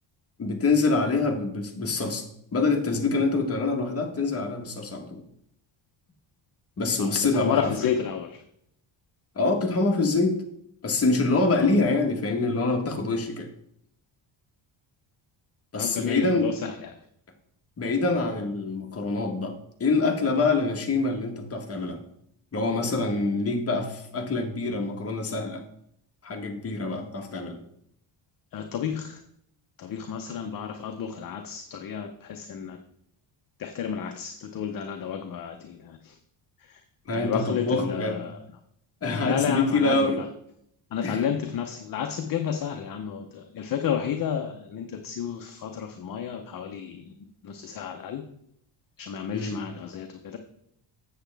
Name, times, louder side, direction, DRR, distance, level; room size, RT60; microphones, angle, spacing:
voice 1, 0.4-2.3 2.5-5.2 6.8-7.9 9.3-10.3 10.8-13.5 15.7-16.5 17.8-22.0 22.5-25.6 26.2-27.6 37.0-38.2 39.0-40.2 41.0-41.2 49.3-49.6, left 3 dB, 30° left, 2 dB, 1.2 m, -25 dB
voice 2, 7.0-8.4 11.5-11.6 15.8-16.9 28.5-29.2 29.8-32.8 33.6-36.2 36.6-36.8 37.1-38.4 39.2-40.2 40.9-47.1 47.4-48.2 49.0-50.4, left 8 dB, 45° left, 5 dB, 0.7 m, -31 dB
8.0 x 7.3 x 3.4 m, 0.72 s
cardioid pair, 150°, 48 cm